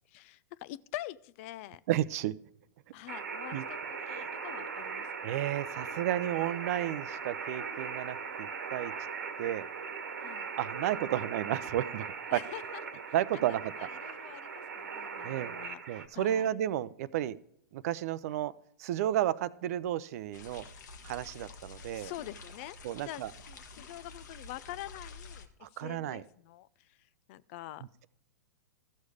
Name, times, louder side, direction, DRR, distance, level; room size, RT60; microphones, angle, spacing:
voice 1, 0.1-1.8 2.9-5.3 10.2-10.5 12.3-13.0 13.5-16.5 21.9-22.8 23.1-27.8, left 15 dB, 50° left, 19 dB, 0.4 m, -46 dB
voice 2, 1.9-2.3 3.5-3.6 4.1-4.3 5.2-8.9 9.4-9.7 10.6-12.0 12.3-12.4 13.1-13.7 15.2-15.5 15.9-17.4 17.7-18.5 18.8-20.7 21.0-22.1 22.8-23.3 25.6-26.2, right 12 dB, 55° right, 17 dB, 0.5 m, -32 dB
sound 1, 3.1-16.1, right 5 dB, 80° right, 1.3 m, -39 dB
sound 2, 20.3-25.5, left 4 dB, 75° left, 1.2 m, -49 dB
13.5 x 6.6 x 4.9 m, 0.72 s
hypercardioid pair, 115°, 10 cm